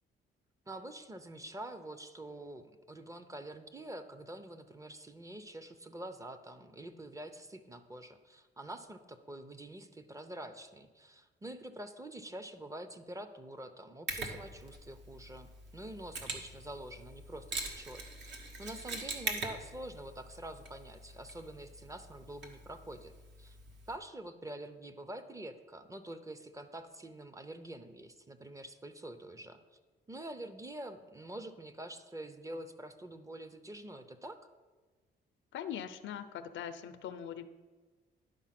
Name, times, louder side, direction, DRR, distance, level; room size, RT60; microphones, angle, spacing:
voice 1, 0.7-23.1 23.4-23.6 23.9-29.8 30.1-34.4, right 1 dB, 15° right, 10 dB, 0.6 m, -46 dB
Mechanisms, 14.1-24.0, right 3 dB, 65° right, 1.3 m, -43 dB
voice 2, 35.5-37.5, left 9 dB, 70° left, 11 dB, 0.6 m, -41 dB
10.5 x 4.2 x 5.9 m, 1.3 s
cardioid pair, 90°, 20 cm